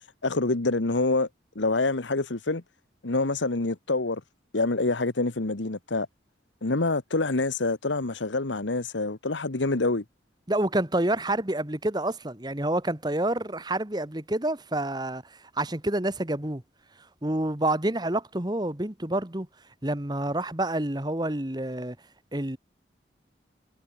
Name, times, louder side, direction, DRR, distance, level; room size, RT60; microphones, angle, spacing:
voice 1, 0.2-1.3 1.5-2.6 3.0-4.2 4.5-6.1 6.6-10.0, left 3 dB, 90° left, 1.4 m, -26 dB
voice 2, 10.5-16.6 17.2-19.5 19.8-22.0 22.3-22.6, right 1 dB, 20° right, 1.6 m, -28 dB
head